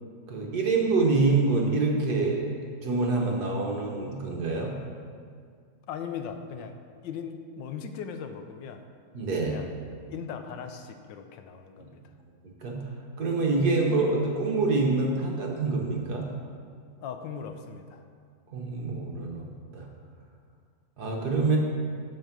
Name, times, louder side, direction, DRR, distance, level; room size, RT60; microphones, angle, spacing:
voice 1, 0.3-2.5 2.8-4.7 9.1-9.6 12.6-12.8 13.2-16.2 18.5-19.5 19.7-19.9 21.0-21.6, right 3 dB, 60° right, 0 dB, 1.7 m, -26 dB
voice 2, 5.9-8.8 9.4-9.7 10.1-12.0 17.0-18.0, left 7 dB, 85° left, 7 dB, 1.4 m, -38 dB
11.5 x 4.6 x 6.0 m, 2.1 s
omnidirectional pair, 2.0 m